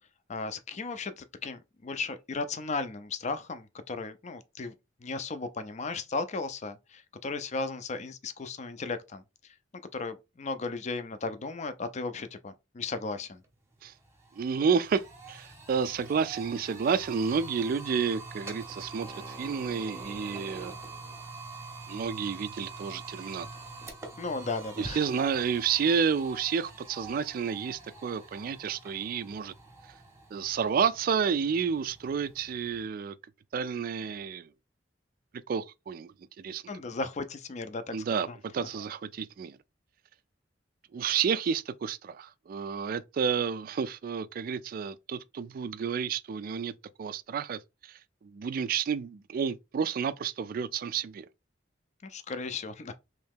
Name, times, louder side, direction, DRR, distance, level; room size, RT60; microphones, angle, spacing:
voice 1, 0.3-4.7 5.0-9.2 9.9-13.4 24.2-25.1 36.7-38.7 52.0-52.9, left 3 dB, 40° left, 0.4 m, -36 dB
sound 1, 13.4-13.5 13.8-32.9, right 3 dB, 15° right, 0.8 m, -45 dB
voice 2, 14.3-21.1 21.9-23.5 24.8-29.5 30.3-33.2 33.5-34.5 35.5-36.6 37.9-39.6 40.9-46.7 47.0-51.3, right 6 dB, 50° right, 0.3 m, -30 dB
3.1 x 2.8 x 3.5 m
head